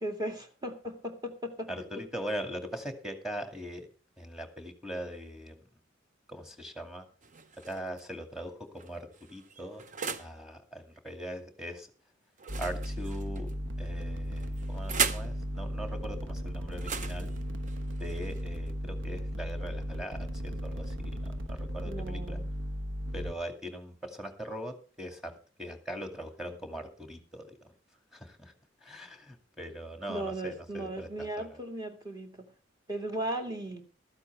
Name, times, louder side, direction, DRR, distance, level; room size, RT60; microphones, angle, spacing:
voice 1, 0.0-1.7 21.8-22.5 30.1-32.4 32.9-33.8, right 1 dB, 20° right, 4 dB, 2.2 m, -36 dB
voice 2, 1.7-3.9 4.2-5.6 6.3-7.1 7.7-9.8 10.2-11.9 12.6-13.5 13.8-17.3 18.0-21.0 21.2-22.4 23.1-25.3 25.6-27.7 28.1-28.5 28.8-31.6, equal, ahead, 5 dB, 2.2 m, -41 dB
sound 1, 7.2-8.0 8.7-10.4 12.4-13.5 14.4-15.4 16.7-18.7, right 5 dB, 40° right, 0.9 m, -37 dB
sound 2, 12.5-23.3, equal, 70° right, 1.1 m, -36 dB
15.0 x 13.5 x 3.4 m, 0.35 s
head